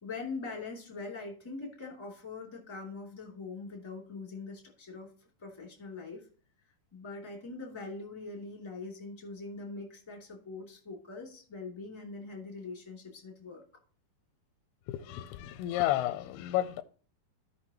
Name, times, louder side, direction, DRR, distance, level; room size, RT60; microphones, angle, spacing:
voice 1, 0.0-5.1 5.4-6.3 6.9-13.6, left 3 dB, 10° left, 1.9 m, -42 dB
voice 2, 14.9-16.8, left 14 dB, 85° left, 2.5 m, -31 dB
14.5 x 5.7 x 3.0 m
omnidirectional pair, 4.7 m